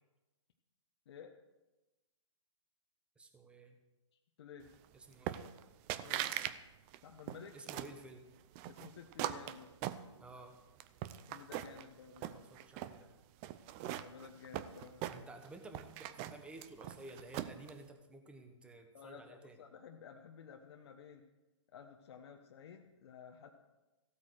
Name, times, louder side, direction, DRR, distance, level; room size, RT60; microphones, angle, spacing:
voice 1, 3.2-3.8 4.9-5.5 7.5-8.2 10.2-10.6 12.2-13.1 15.1-19.6, right 2 dB, 5° right, 5 dB, 1.2 m, -53 dB
voice 2, 4.4-4.7 6.0-6.3 7.0-7.6 8.7-9.7 11.3-12.4 13.9-15.2 18.9-21.2 21.7-23.5, left 7 dB, 55° left, 2 dB, 1.2 m, -53 dB
sound 1, 5.3-5.6 5.9-6.6 6.9-8.0 8.6-10.4 10.8-11.8 12.2-13.0 13.4-15.5 15.7-17.7, right 13 dB, 25° right, 0.5 m, -41 dB
15.5 x 8.8 x 6.4 m, 1.1 s
hypercardioid pair, 150°, 16 cm